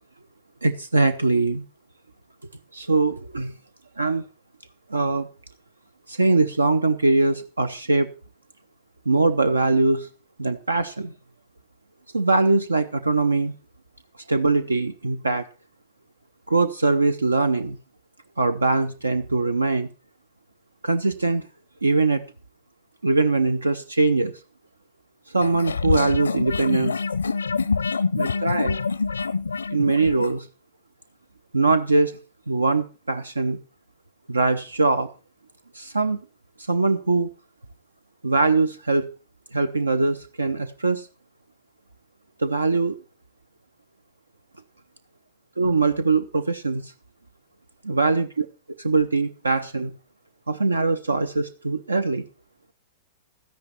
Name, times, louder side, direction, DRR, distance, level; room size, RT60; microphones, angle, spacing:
voice 1, 0.6-1.6 2.7-3.5 4.0-4.2 4.9-5.3 6.1-8.1 9.1-10.1 10.4-11.1 12.1-13.5 14.3-15.5 16.5-17.8 18.4-19.9 20.8-21.5 21.8-22.2 23.0-24.4 25.3-27.0 28.2-28.8 29.7-30.5 31.5-32.1 32.5-33.6 34.3-35.1 35.7-36.2 36.6-37.3 38.2-39.1 39.5-41.1 42.4-43.0 45.6-46.9 47.8-48.3 48.8-49.9 50.5-52.2, right 3 dB, 85° right, 0.7 m, -22 dB
sound 1, 25.4-30.3, left 4 dB, 80° left, 0.5 m, -26 dB
13.0 x 10.5 x 4.3 m
figure-of-eight pair, 105°, 0 cm